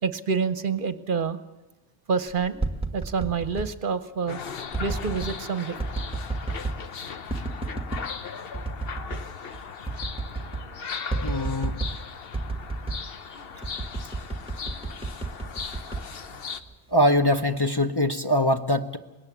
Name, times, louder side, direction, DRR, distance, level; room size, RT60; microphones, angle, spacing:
voice 1, 0.0-1.4 2.1-2.6 2.9-4.4 4.8-5.8 8.4-8.5 9.9-10.0 10.6-10.8, right 5 dB, 55° right, 12 dB, 1.0 m, -28 dB
sound 1, 2.4-3.7 4.7-5.4 5.8-6.8 7.3-8.1 8.5-9.3 9.5-9.6 9.9-10.7 11.1-12.0 12.3-13.1 13.6-16.7 17.1-17.6, right 3 dB, 5° right, 1.2 m, -31 dB
sound 2, 4.3-16.6, left 6 dB, 65° left, 1.1 m, -38 dB
voice 2, 11.2-11.8 16.9-19.0, left 1 dB, 25° left, 4 dB, 0.8 m, -23 dB
20.5 x 18.0 x 7.3 m, 1.1 s
omnidirectional pair, 1.1 m